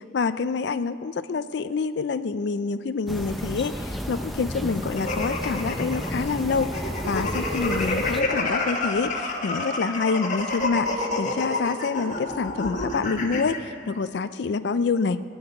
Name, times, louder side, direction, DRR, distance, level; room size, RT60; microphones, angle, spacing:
voice 1, 0.1-15.2, left 4 dB, 65° left, 12 dB, 0.4 m, -27 dB
sound 1, 3.1-8.2, equal, ahead, 0.7 m, -32 dB
sound 2, 5.0-13.6, left 2 dB, 40° left, 1.3 m, -29 dB
17.0 x 7.1 x 9.6 m, 2.5 s
head